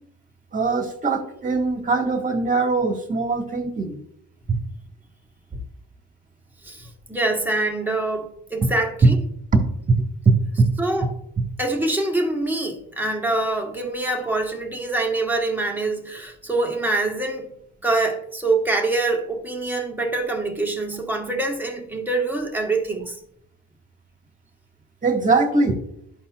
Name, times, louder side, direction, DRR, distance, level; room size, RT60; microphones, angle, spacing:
voice 1, 0.5-4.0 4.5-4.6 9.9-10.0 10.2-10.7 25.0-25.8, right 3 dB, 25° right, 1.5 m, -21 dB
voice 2, 6.6-9.2 10.8-11.1 11.6-17.5 17.8-23.2, right 2 dB, 5° right, 1.4 m, -25 dB
12.0 x 4.2 x 2.4 m
cardioid pair, 90°, 30 cm